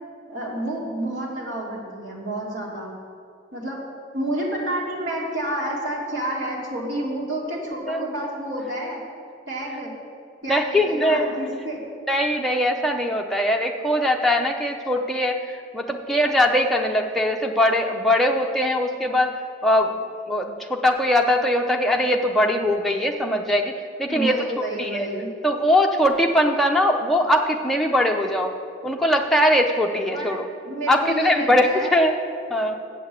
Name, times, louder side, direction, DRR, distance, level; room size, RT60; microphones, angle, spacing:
voice 1, 0.3-2.9 3.5-3.8 4.1-9.0 9.5-9.9 10.4-11.8 24.1-25.3 30.1-30.4 30.6-32.0, right 1 dB, 85° right, -4 dB, 2.5 m, -29 dB
voice 2, 10.5-11.3 12.1-19.3 19.6-20.0 20.3-24.4 24.8-25.1 25.4-28.5 28.8-30.4 30.9-32.1 32.5-32.8, left 1 dB, ahead, 1 dB, 0.6 m, -21 dB
7.6 x 6.9 x 8.0 m, 2.3 s
head